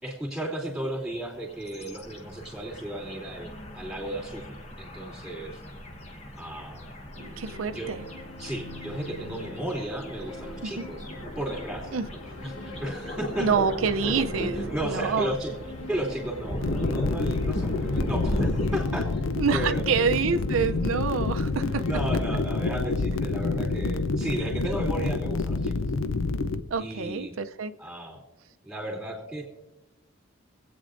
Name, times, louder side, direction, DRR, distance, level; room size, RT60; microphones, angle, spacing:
voice 1, 0.0-5.6 6.4-6.9 7.7-7.9 8.4-11.0 11.3-12.0 12.4-13.5 14.5-15.5 15.8-19.3 19.5-19.9 21.8-25.7 26.8-27.3 27.8-28.2 28.6-29.4, right 1 dB, 5° right, -3 dB, 2.9 m, -34 dB
sound 1, 1.1-18.9, equal, 30° left, 1.1 m, -37 dB
sound 2, 7.1-22.9, left 2 dB, 65° left, 1.4 m, -45 dB
voice 2, 7.2-8.0 10.6-10.9 11.9-12.0 13.4-15.3 19.4-21.8 26.7-27.7, right 5 dB, 90° right, 9 dB, 0.6 m, -27 dB
sound 3, 16.6-26.6, left 3 dB, 80° left, 0.6 m, -28 dB
25.5 x 8.7 x 2.6 m, 1.1 s
head